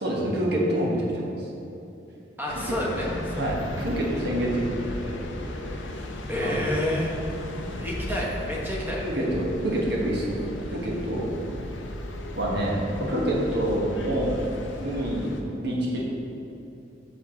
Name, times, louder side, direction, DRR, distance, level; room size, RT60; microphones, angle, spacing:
voice 1, 0.0-1.3 2.5-5.2 6.4-6.6 9.0-10.4 10.7-11.3 12.3-12.8 13.1-14.3 14.8-16.0, right 1 dB, 60° right, -3 dB, 1.3 m, -27 dB
voice 2, 2.4-3.5 6.3-7.1 7.7-9.0, left 1 dB, 10° right, -4 dB, 1.1 m, -29 dB
sound 1, 2.5-15.4, left 1 dB, 90° left, 0.7 m, -36 dB
5.6 x 4.7 x 5.8 m, 2.8 s
head